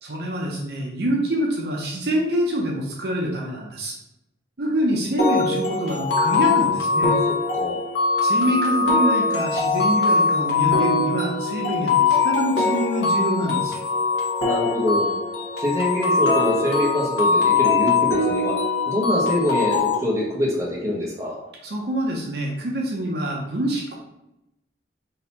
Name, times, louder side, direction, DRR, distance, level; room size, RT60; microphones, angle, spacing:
voice 1, 0.0-4.0 4.6-7.1 8.2-13.8 21.6-24.0, right 1 dB, 60° right, -1 dB, 0.7 m, -26 dB
berceuse à cologne, 5.2-20.0, left 4 dB, 70° left, 1.0 m, -21 dB
voice 2, 14.4-15.1 15.6-18.6 18.9-21.3, left 1 dB, 15° right, -5 dB, 1.0 m, -24 dB
3.9 x 2.8 x 4.1 m, 0.88 s
head